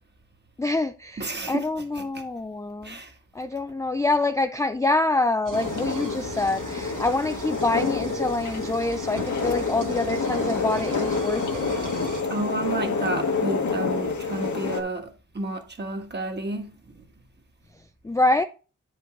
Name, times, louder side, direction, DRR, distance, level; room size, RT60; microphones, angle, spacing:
voice 1, 0.6-3.0 3.3-11.7 18.0-18.4, left 2 dB, 10° left, 0.3 m, -26 dB
voice 2, 1.2-1.7 1.9-2.0 2.8-3.1 12.3-17.1, right 2 dB, 30° right, 1.4 m, -31 dB
sound 1, 5.4-12.2, right 4 dB, 65° right, 1.4 m, -39 dB
sound 2, 5.5-14.8, left 4 dB, 60° left, 1.3 m, -28 dB
9.2 x 5.2 x 3.8 m
wide cardioid pair, 150°, 33 cm